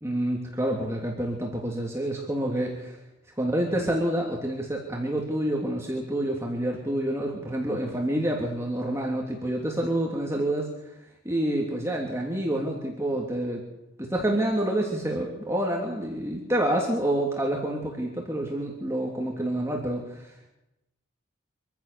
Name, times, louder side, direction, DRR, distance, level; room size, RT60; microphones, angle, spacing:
voice 1, 0.0-3.0 3.4-10.7 11.2-13.6 14.0-20.5, right 1 dB, 15° right, -1 dB, 2.9 m, -28 dB
25.5 x 15.0 x 6.9 m, 0.90 s
head